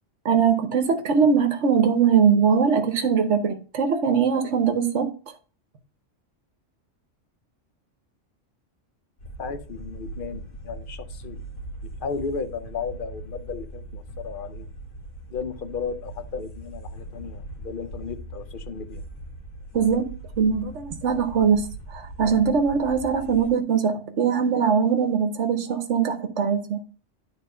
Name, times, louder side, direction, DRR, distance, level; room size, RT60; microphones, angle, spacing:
voice 1, 0.2-5.1 19.7-26.8, right 6 dB, 70° right, 1.2 m, -21 dB
sound 1, 9.2-23.5, right 2 dB, 80° left, 2.0 m, -40 dB
voice 2, 9.4-11.4 12.0-14.7 15.3-19.0, left 5 dB, 50° left, 0.8 m, -34 dB
10.5 x 3.6 x 5.5 m
omnidirectional pair, 1.3 m